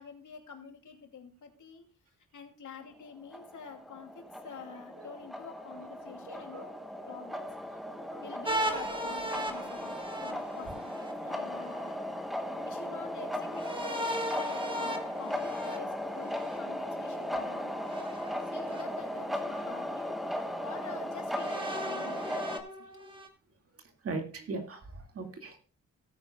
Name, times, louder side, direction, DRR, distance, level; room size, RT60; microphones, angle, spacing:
voice 1, 0.0-1.8 2.3-6.7 7.1-7.5 8.2-12.3 12.5-17.7 18.5-22.9, left 6 dB, 75° left, 4 dB, 2.6 m, -47 dB
sound 1, 3.2-22.6, equal, ahead, 1.0 m, -37 dB
voice 2, 6.3-6.6 8.0-8.3 24.0-25.6, right 3 dB, 50° right, 4 dB, 2.1 m, -39 dB
sound 2, 8.4-11.1 13.5-16.6 17.9-18.8 19.6-19.7 21.3-23.3, equal, 15° right, 1.3 m, -37 dB
18.0 x 9.4 x 2.3 m, 0.40 s
wide cardioid pair, 180°, 30 cm